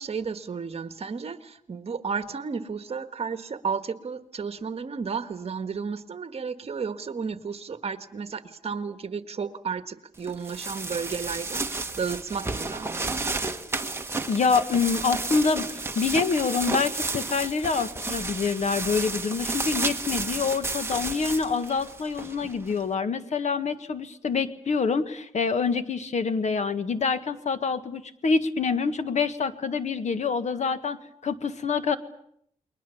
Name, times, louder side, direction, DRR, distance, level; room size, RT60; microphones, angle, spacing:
voice 1, 0.0-13.2, right 5 dB, 50° right, 10 dB, 1.6 m, -33 dB
sound 1, 10.2-22.8, right 3 dB, 20° right, 1.6 m, -32 dB
voice 2, 14.3-32.0, left 5 dB, 60° left, 10 dB, 1.7 m, -26 dB
30.0 x 22.0 x 7.1 m, 0.69 s
wide cardioid pair, 125°, 13 cm